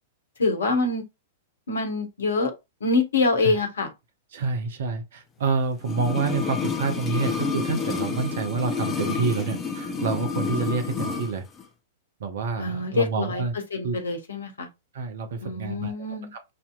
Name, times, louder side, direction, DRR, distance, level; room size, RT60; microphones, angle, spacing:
voice 1, 0.4-1.0 1.7-2.5 2.8-3.9 12.6-13.4 13.7-14.7 15.4-16.3, left 3 dB, 70° left, 1.2 m, -25 dB
voice 2, 4.3-11.4 12.2-13.5 13.8-14.0 14.9-15.9 16.3-16.4, right 4 dB, 60° right, 0.8 m, -28 dB
sound 1, 5.8-11.3 11.6-11.7, left 5 dB, 20° left, 0.8 m, -29 dB
6.4 x 2.8 x 2.4 m
figure-of-eight pair, 100°, 0 cm